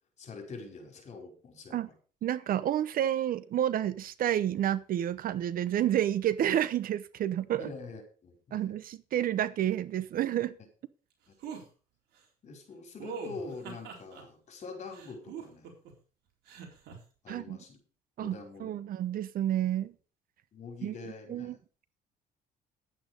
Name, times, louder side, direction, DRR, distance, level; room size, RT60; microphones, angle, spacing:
voice 1, 0.2-1.9 7.6-8.8 11.3-11.4 12.4-15.7 17.2-17.8 18.2-18.7 20.5-21.6, left 3 dB, 45° left, 5.1 m, -45 dB
voice 2, 2.2-7.7 8.5-10.6 17.3-17.6 18.2-19.9 20.8-20.9 21.3-21.6, right 11 dB, 55° right, 0.8 m, -30 dB
sound 1, 11.4-11.6 13.0-14.2 14.9-15.9 16.5-17.0, right 6 dB, 80° right, 4.0 m, -42 dB
11.0 x 9.1 x 5.2 m
cardioid pair, 110°, 17 cm